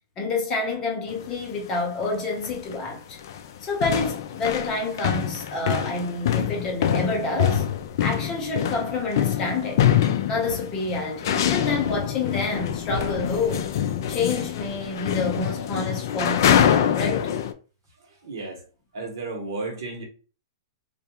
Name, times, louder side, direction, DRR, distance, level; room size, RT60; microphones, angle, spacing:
voice 1, 0.2-3.2 3.6-7.6 8.0-9.8 10.3-13.7 14.1-17.3, left 3 dB, 25° left, 0.7 m, -28 dB
sound 1, 1.1-1.3 2.1-2.2 2.4-2.8 3.1-17.5, left 9 dB, 55° left, 0.3 m, -25 dB
voice 2, 18.2-18.6 18.9-20.0, right 3 dB, 65° right, 1.0 m, -33 dB
2.3 x 2.2 x 2.8 m
hypercardioid pair, 155°, 2 cm